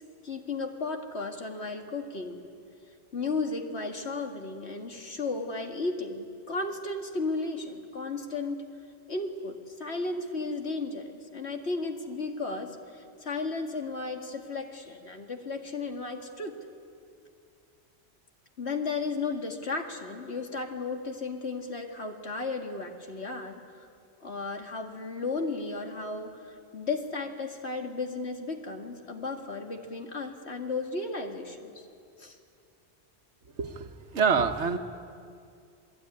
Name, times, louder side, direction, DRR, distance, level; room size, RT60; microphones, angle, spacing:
voice 1, 0.2-2.5 3.1-8.6 9.1-16.6 18.6-23.6 24.2-31.9 32.2-32.4, left 3 dB, 70° left, 3 dB, 2.4 m, -34 dB
voice 2, 33.6-34.8, right 5 dB, 80° right, 7 dB, 1.5 m, -26 dB
27.5 x 19.0 x 9.8 m, 2.4 s
omnidirectional pair, 1.2 m